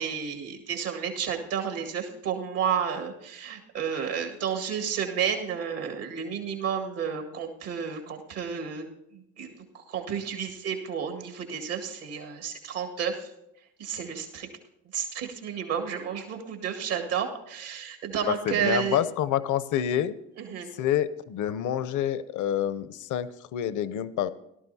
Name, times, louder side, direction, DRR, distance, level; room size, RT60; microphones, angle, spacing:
voice 1, 0.0-8.9 9.1-13.3 13.8-14.5 14.9-19.0 20.4-20.7, right 7 dB, 80° right, 3 dB, 1.9 m, -31 dB
voice 2, 18.3-20.1 20.8-24.3, left 10 dB, 60° left, 16 dB, 0.7 m, -27 dB
17.5 x 12.0 x 2.8 m, 0.83 s
hypercardioid pair, 55°, 35 cm